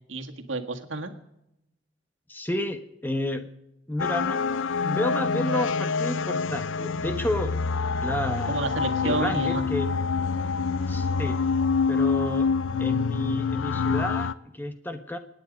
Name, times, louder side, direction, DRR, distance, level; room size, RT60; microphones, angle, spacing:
voice 1, 0.1-1.1 8.5-9.6, right 3 dB, 85° right, 5 dB, 1.8 m, -30 dB
voice 2, 2.3-3.5 3.9-4.4 4.8-7.5 8.0-8.6 9.0-9.9 10.9-11.4 11.9-12.5 12.8-15.2, left 1 dB, 10° left, 7 dB, 1.1 m, -30 dB
sound 1, 4.0-14.3, left 5 dB, 85° left, 0.5 m, -26 dB
26.5 x 9.6 x 5.2 m, 0.85 s
head